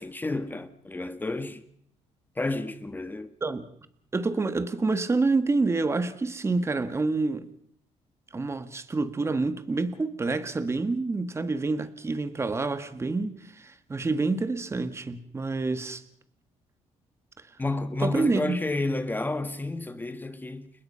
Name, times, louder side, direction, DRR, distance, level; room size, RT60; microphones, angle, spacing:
voice 1, 0.0-1.6 2.3-3.3 17.6-20.7, left 2 dB, 15° left, 1.6 m, -31 dB
voice 2, 4.1-7.5 8.3-16.0 17.4-17.5 18.0-18.6, right 3 dB, 25° right, 1.7 m, -27 dB
30.0 x 17.0 x 5.7 m
cardioid pair, 110°, 12 cm